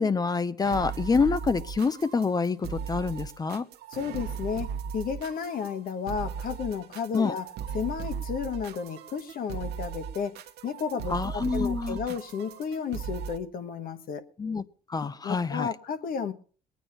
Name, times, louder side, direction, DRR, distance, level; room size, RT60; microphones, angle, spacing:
voice 1, 0.0-3.6 7.1-7.3 11.1-12.0 14.4-14.6 14.9-15.7, left 4 dB, 25° left, 0.7 m, -27 dB
sound 1, 0.6-13.4, right 7 dB, 75° right, 1.2 m, -37 dB
voice 2, 3.9-7.5 7.7-10.3 10.6-14.3 15.2-16.3, left 6 dB, 60° left, 1.4 m, -33 dB
20.0 x 9.3 x 5.5 m
cardioid pair, 110°, 17 cm